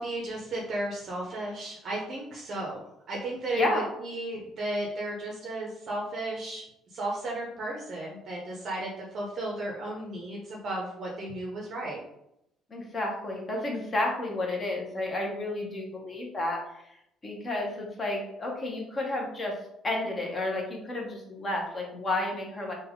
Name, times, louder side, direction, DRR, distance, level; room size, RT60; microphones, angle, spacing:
voice 1, 0.0-2.8 3.1-6.6 6.9-12.0, right 1 dB, 35° right, -2 dB, 0.6 m, -34 dB
voice 2, 12.7-16.6 17.2-19.5 19.8-22.7, left 2 dB, 20° left, 0 dB, 0.6 m, -31 dB
3.3 x 2.1 x 3.5 m, 0.80 s
cardioid pair, 170°, 0 cm